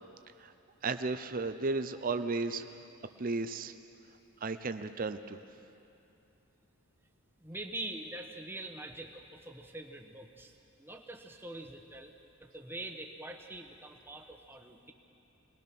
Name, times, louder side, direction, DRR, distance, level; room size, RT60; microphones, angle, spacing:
voice 1, 0.8-2.7 3.2-3.7 4.4-5.4, right 3 dB, 40° right, 9 dB, 0.6 m, -34 dB
voice 2, 7.4-12.1 12.4-14.9, right 2 dB, 10° right, 4 dB, 1.2 m, -44 dB
23.0 x 21.0 x 6.0 m, 2.7 s
head